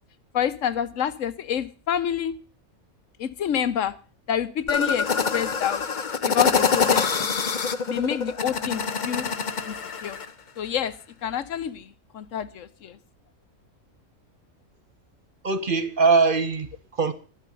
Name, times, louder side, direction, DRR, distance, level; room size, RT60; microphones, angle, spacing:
voice 1, 0.3-2.3 3.2-3.9 4.3-5.8 6.2-7.5 7.9-9.3 9.6-9.8 10.0-10.2 10.6-10.9 11.2-13.0, left 9 dB, 65° left, 1.2 m, -28 dB
sound 1, 4.7-10.3, left 5 dB, 40° left, 0.9 m, -25 dB
voice 2, 15.4-17.1, right 4 dB, 40° right, 1.2 m, -22 dB
12.5 x 11.5 x 5.4 m
omnidirectional pair, 1.5 m